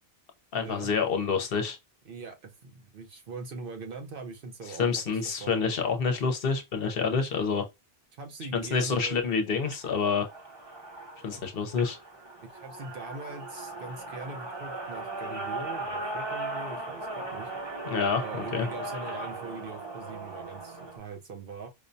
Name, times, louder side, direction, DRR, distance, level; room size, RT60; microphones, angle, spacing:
voice 1, 0.5-1.8 4.8-7.7 8.5-10.3 11.2-12.0 17.9-18.7, left 5 dB, 65° left, 0.9 m, -28 dB
voice 2, 2.0-5.6 8.1-9.3 11.3-11.4 12.5-17.5 18.2-21.7, right 4 dB, 60° right, 0.9 m, -42 dB
sound 1, 9.6-21.0, right 2 dB, 30° right, 0.8 m, -38 dB
4.9 x 2.2 x 2.6 m
omnidirectional pair, 1.0 m